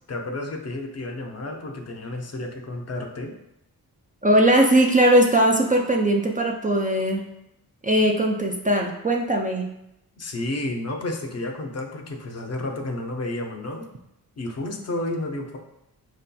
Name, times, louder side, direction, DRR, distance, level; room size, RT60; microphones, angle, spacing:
voice 1, 0.1-3.4 10.2-13.9 14.4-15.6, left 2 dB, 45° left, 3 dB, 0.6 m, -31 dB
voice 2, 4.2-7.3 7.8-9.7, right 1 dB, 25° right, 1 dB, 0.3 m, -19 dB
4.7 x 2.7 x 2.2 m, 0.83 s
cardioid pair, 80°, 37 cm